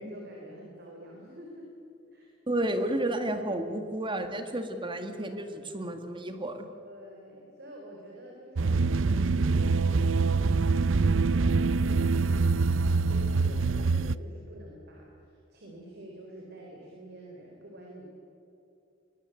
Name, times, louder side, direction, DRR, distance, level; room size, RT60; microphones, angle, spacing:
voice 1, 0.0-1.7 2.1-2.3 6.7-18.1, right 1 dB, 55° right, 0 dB, 4.2 m, -48 dB
voice 2, 2.5-6.7, right 1 dB, 25° right, 6 dB, 2.1 m, -31 dB
sound 1, 8.6-14.1, right 4 dB, 70° right, 0.6 m, -25 dB
23.0 x 20.0 x 8.0 m, 2.7 s
head